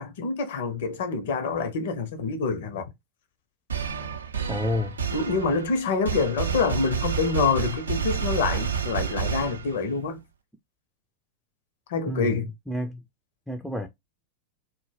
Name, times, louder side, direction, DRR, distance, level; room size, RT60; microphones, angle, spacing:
voice 1, 0.0-2.9 5.1-10.2 11.9-12.5, left 4 dB, 55° left, 0.5 m, -26 dB
sound 1, 3.7-10.0, right 7 dB, 75° right, 0.4 m, -30 dB
voice 2, 4.5-5.0 12.1-13.0 13.5-13.9, left 1 dB, ahead, 0.3 m, -30 dB
2.1 x 2.0 x 3.1 m
figure-of-eight pair, 90°, 0 cm